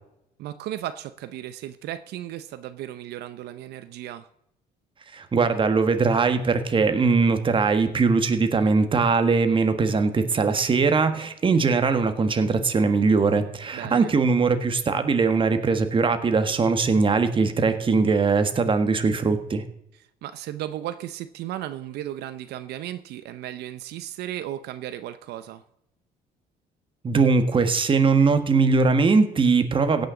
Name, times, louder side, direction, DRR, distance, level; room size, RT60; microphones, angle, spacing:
voice 1, 0.4-4.3 13.7-14.1 19.9-25.6, right 12 dB, 75° right, 12 dB, 0.7 m, -35 dB
voice 2, 5.1-19.6 27.0-30.1, right 4 dB, 30° right, 8 dB, 1.6 m, -21 dB
16.0 x 6.6 x 7.0 m, 0.79 s
cardioid pair, 110°, 17 cm